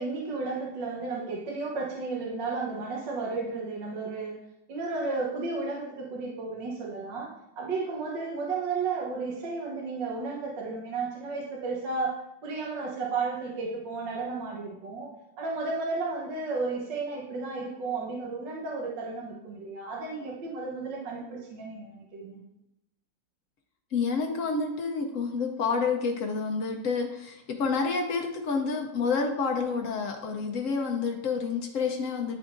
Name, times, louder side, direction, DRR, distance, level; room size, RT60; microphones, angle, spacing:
voice 1, 0.0-4.4 4.7-7.3 7.6-22.4, right 4 dB, 70° right, -2 dB, 1.6 m, -33 dB
voice 2, 23.9-32.4, left 5 dB, 70° left, 3 dB, 0.7 m, -29 dB
10.5 x 3.6 x 2.5 m, 0.85 s
omnidirectional pair, 2.0 m